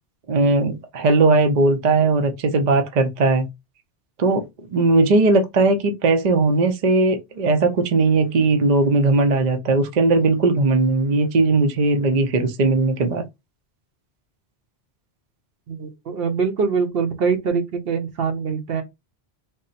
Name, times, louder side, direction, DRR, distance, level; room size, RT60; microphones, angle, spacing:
voice 1, 0.3-3.5 4.2-13.2, right 3 dB, 50° right, 0.6 m, -18 dB
voice 2, 15.7-18.8, right 5 dB, 65° right, 1.0 m, -23 dB
3.6 x 2.0 x 4.0 m
omnidirectional pair, 1.1 m